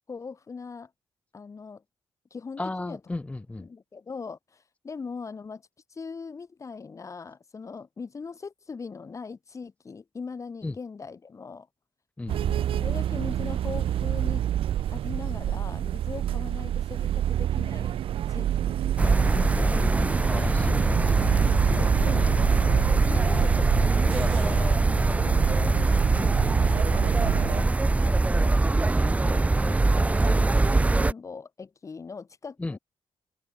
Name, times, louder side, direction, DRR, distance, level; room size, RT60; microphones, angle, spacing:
voice 1, 0.1-0.9 1.3-1.8 2.3-3.0 3.6-5.6 5.9-11.7 12.3-14.4 14.9-18.0 18.3-19.9 21.7-24.9 25.2-25.9 26.2-26.7 27.3-27.7 28.0-28.7 29.2-32.8, left 5 dB, 35° left, 4.0 m, -40 dB
voice 2, 2.6-3.7 10.6-10.7 12.2-12.8 20.3-21.4 32.6-32.8, left 2 dB, 15° left, 0.8 m, -35 dB
sound 1, 12.3-27.6, right 11 dB, 70° right, 0.4 m, -28 dB
sound 2, 19.0-31.1, right 2 dB, 15° right, 0.5 m, -23 dB
wide cardioid pair, 140°, 10 cm